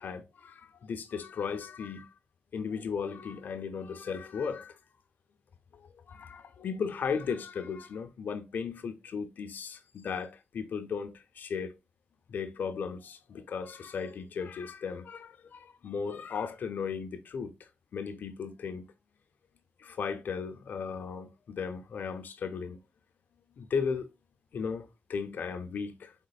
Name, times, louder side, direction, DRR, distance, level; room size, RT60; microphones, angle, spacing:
voice 1, 0.0-2.1 2.5-4.8 5.7-11.7 12.3-18.9 19.8-22.8 23.6-24.1 24.5-26.1, left 6 dB, 75° left, 0.6 m, -36 dB
5.1 x 3.5 x 2.3 m
cardioid pair, 65°, 3 cm